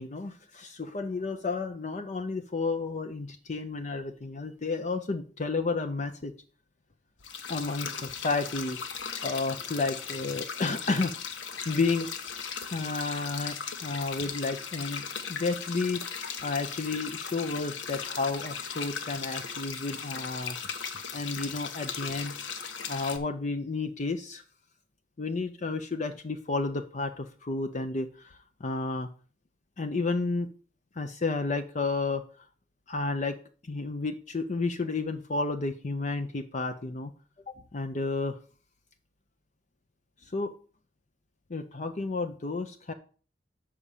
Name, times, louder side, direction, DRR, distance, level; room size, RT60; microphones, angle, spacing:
voice 1, 0.0-6.3 7.5-8.8 9.2-11.1 11.7-12.1 12.7-15.0 15.3-16.0 16.4-20.6 21.1-22.3 22.9-24.4 25.2-29.1 29.8-30.5 31.0-32.5 32.9-33.4 33.6-37.1 37.5-38.4 40.2-40.6 41.5-42.9, left 3 dB, 40° left, 7 dB, 0.6 m, -31 dB
sound 1, 7.2-23.2, left 6 dB, 80° left, 1.0 m, -37 dB
6.9 x 4.9 x 7.0 m, 0.40 s
head